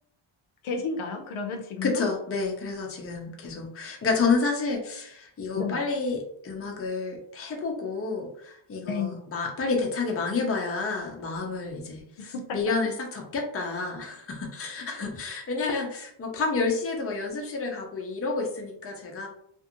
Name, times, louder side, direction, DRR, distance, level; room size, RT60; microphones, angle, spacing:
voice 1, 0.6-2.0 5.6-5.8 8.9-9.2 12.3-12.6, left 5 dB, 80° left, 4 dB, 0.6 m, -31 dB
voice 2, 1.8-19.3, left 4 dB, 30° left, 0 dB, 0.5 m, -30 dB
2.5 x 2.4 x 2.8 m, 0.69 s
wide cardioid pair, 170°, 48 cm